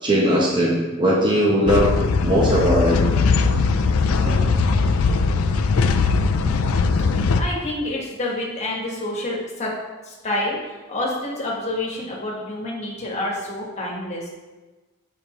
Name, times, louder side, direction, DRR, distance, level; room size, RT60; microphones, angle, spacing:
voice 1, 0.0-3.0, equal, 20° right, -4 dB, 0.9 m, -19 dB
sound 1, 1.7-7.4, left 4 dB, 75° left, 0.4 m, -20 dB
sound 2, 4.3-6.2, right 1 dB, 70° right, 1.7 m, -33 dB
voice 2, 6.3-6.9 7.3-9.7 10.0-10.6 10.9-14.3, left 1 dB, 30° left, -3 dB, 1.5 m, -28 dB
7.1 x 5.1 x 3.1 m, 1.2 s
head